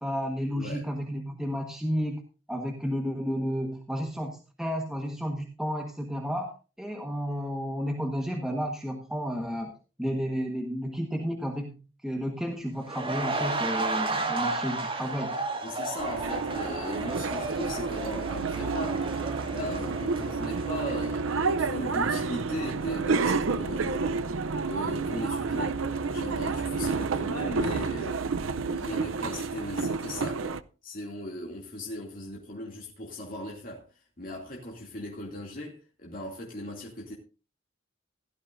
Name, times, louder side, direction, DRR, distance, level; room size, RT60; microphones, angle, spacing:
voice 1, 0.0-2.2 2.5-6.5 6.8-9.7 10.0-11.8 12.0-15.4, equal, 5° right, 1.3 m, -32 dB
sound 1, 12.8-21.7 22.0-22.2, right 2 dB, 25° right, 2.4 m, -33 dB
voice 2, 15.6-19.1 19.5-25.8 26.1-28.3 28.6-37.1, left 1 dB, 45° left, 2.6 m, -38 dB
sound 2, 16.0-30.6, right 4 dB, 90° right, 0.6 m, -30 dB
16.5 x 12.5 x 2.6 m
head